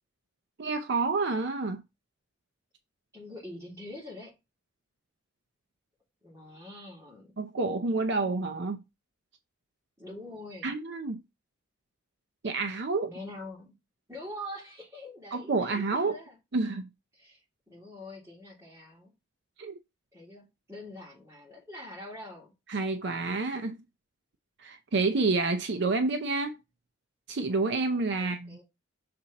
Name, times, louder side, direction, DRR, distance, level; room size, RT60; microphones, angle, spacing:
voice 1, 0.6-1.8 7.4-8.8 10.6-11.2 12.4-13.1 15.3-16.2 16.5-16.9 19.6-19.8 22.7-23.8 24.6-26.6 27.3-28.6, right 3 dB, 60° right, 0.6 m, -29 dB
voice 2, 3.1-4.3 6.2-7.3 10.0-10.7 13.1-13.7 14.1-16.4 17.2-19.1 20.1-22.5 28.2-28.6, left 1 dB, 15° right, 3.5 m, -44 dB
6.4 x 4.3 x 4.0 m
head